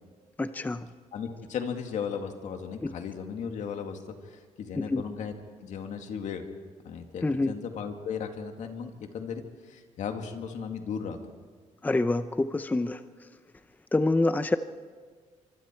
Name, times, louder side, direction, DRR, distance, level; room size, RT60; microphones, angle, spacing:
voice 1, 0.4-0.9 2.8-2.9 4.7-5.0 7.2-7.5 11.8-13.0 13.9-14.6, left 2 dB, 15° left, 11 dB, 0.6 m, -26 dB
voice 2, 1.1-5.3 5.6-6.4 6.8-11.2, left 6 dB, 70° left, 5 dB, 2.2 m, -36 dB
25.0 x 24.5 x 4.6 m, 1.6 s
cardioid pair, 110°, 13 cm